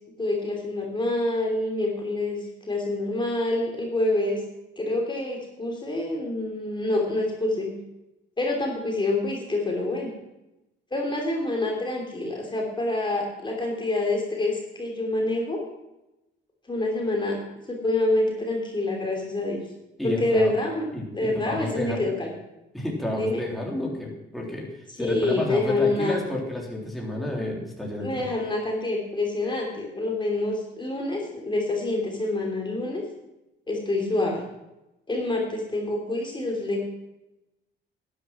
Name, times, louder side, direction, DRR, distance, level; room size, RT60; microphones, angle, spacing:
voice 1, 0.2-4.4 4.8-7.7 8.4-10.1 10.9-15.6 16.7-17.4 17.7-19.6 20.0-20.9 21.1-22.3 23.2-23.4 25.0-26.2 28.0-33.0 33.7-34.4 35.1-36.8, left 2 dB, 25° left, 0 dB, 3.2 m, -27 dB
voice 2, 20.0-20.5 20.9-22.1 22.7-28.3, left 1 dB, ahead, -2 dB, 3.5 m, -31 dB
12.0 x 10.0 x 6.0 m, 0.94 s
cardioid pair, 90°, 20 cm